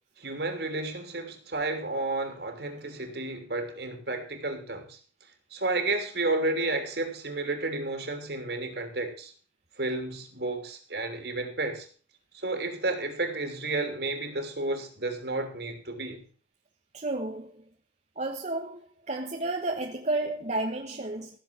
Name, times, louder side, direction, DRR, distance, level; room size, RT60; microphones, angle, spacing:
voice 1, 0.2-5.0 5.5-9.3 9.8-11.9 12.3-16.2, right 2 dB, 65° right, 3.1 m, -31 dB
voice 2, 16.9-17.5 18.2-21.3, right 2 dB, 40° right, 1.3 m, -31 dB
15.5 x 7.3 x 6.2 m
head